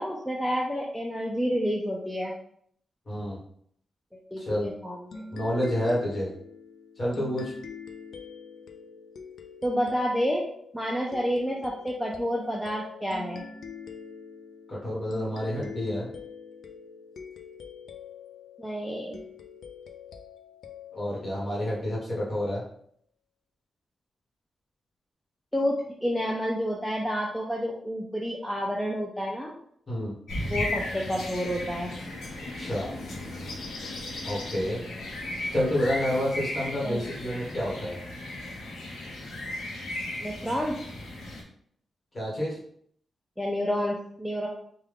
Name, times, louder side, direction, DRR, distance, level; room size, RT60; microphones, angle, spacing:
voice 1, 0.0-2.3 4.1-5.3 9.6-10.4 10.7-13.4 18.6-19.2 25.5-29.5 30.4-31.9 34.9-35.1 36.8-37.0 40.2-40.8 43.4-44.5, equal, ahead, -2 dB, 0.4 m, -29 dB
voice 2, 3.1-3.4 4.4-4.7 5.3-6.3 7.0-7.5 14.7-16.1 20.9-22.6 29.9-30.1 32.6-32.9 34.2-34.8 35.5-38.0 42.1-42.6, equal, 30° left, -6 dB, 1.3 m, -29 dB
sound 1, 5.1-22.3, left 5 dB, 70° left, 0.4 m, -45 dB
sound 2, 30.3-41.4, left 1 dB, 90° left, 0.7 m, -36 dB
3.4 x 2.2 x 3.5 m, 0.66 s
wide cardioid pair, 145°, 0 cm